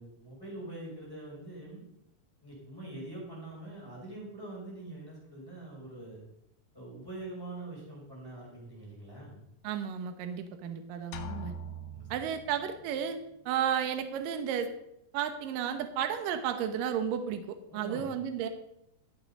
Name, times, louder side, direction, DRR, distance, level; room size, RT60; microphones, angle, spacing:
voice 1, 0.0-1.8 2.4-6.2 6.7-9.4 11.9-12.1 17.7-18.1, right 2 dB, 5° left, -5 dB, 4.9 m, -44 dB
voice 2, 9.6-11.5 12.1-13.2 13.5-14.7 15.1-18.5, right 8 dB, 70° right, 8 dB, 2.3 m, -33 dB
sound 1, 11.1-13.0, equal, 75° left, 2.9 m, -42 dB
14.0 x 8.0 x 5.4 m, 0.82 s
omnidirectional pair, 4.9 m